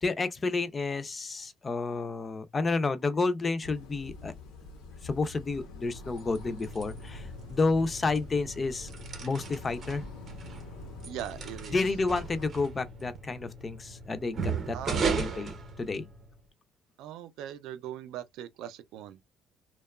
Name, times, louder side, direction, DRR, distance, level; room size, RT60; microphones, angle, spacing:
voice 1, 0.0-4.3 5.0-8.9 9.2-10.0 11.7-16.1, left 3 dB, 25° left, 0.4 m, -30 dB
sound 1, 3.6-12.5, left 3 dB, 90° left, 0.7 m, -46 dB
sound 2, 5.9-16.4, right 5 dB, 40° right, 0.6 m, -37 dB
voice 2, 11.1-11.8 14.7-15.1 17.0-19.2, right 11 dB, 80° right, 0.4 m, -40 dB
2.7 x 2.2 x 2.2 m
cardioid pair, 130°, 0 cm